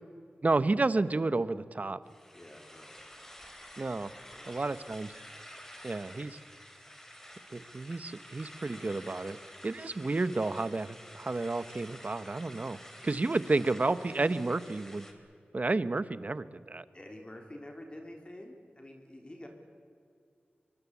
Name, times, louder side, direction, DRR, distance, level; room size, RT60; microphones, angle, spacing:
voice 1, 0.4-2.0 3.8-4.1 4.5-5.1 5.8-6.4 7.5-9.4 9.6-15.1 15.5-16.8, right 3 dB, 45° right, 15 dB, 1.0 m, -31 dB
sound 1, 2.0-15.1, equal, 10° left, 3.7 m, -50 dB
voice 2, 2.3-3.0 4.0-4.6 6.1-6.3 16.9-19.5, left 1 dB, 30° left, 3 dB, 3.8 m, -48 dB
25.0 x 23.0 x 8.4 m, 2.3 s
wide cardioid pair, 70°, 4 cm